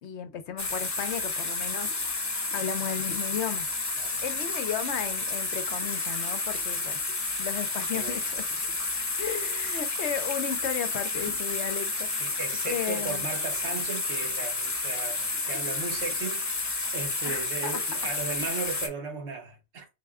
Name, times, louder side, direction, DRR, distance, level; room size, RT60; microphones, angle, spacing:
voice 1, 0.0-2.2 2.5-3.7 4.2-7.0 7.4-8.5 9.2-13.3 17.3-17.8, left 8 dB, 70° left, 0.9 m, -35 dB
sound 1, 0.6-18.9, left 3 dB, 20° left, 0.6 m, -31 dB
voice 2, 12.2-19.9, right 5 dB, 65° right, 1.2 m, -36 dB
4.1 x 2.2 x 3.4 m
omnidirectional pair, 1.3 m